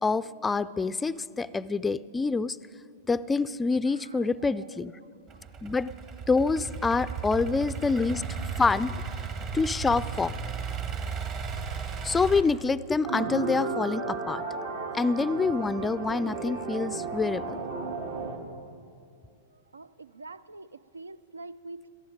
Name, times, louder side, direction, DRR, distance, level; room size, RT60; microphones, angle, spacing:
voice 1, 0.0-2.6 3.1-4.9 5.6-5.9 6.3-8.2 8.6-9.0 9.5-10.3 12.0-14.4 14.9-17.6, left 4 dB, 15° left, 16 dB, 0.3 m, -26 dB
Idling / Accelerating revving vroom, 5.3-12.4, right 5 dB, 40° right, 1.4 m, -35 dB
voice 2, 7.0-7.6 19.7-21.9, right 3 dB, 85° right, 17 dB, 0.4 m, -45 dB
sound 1, 13.1-18.4, right 3 dB, 65° right, 1.7 m, -33 dB
18.5 x 13.5 x 5.1 m, 2.4 s
hypercardioid pair, 105°, 0 cm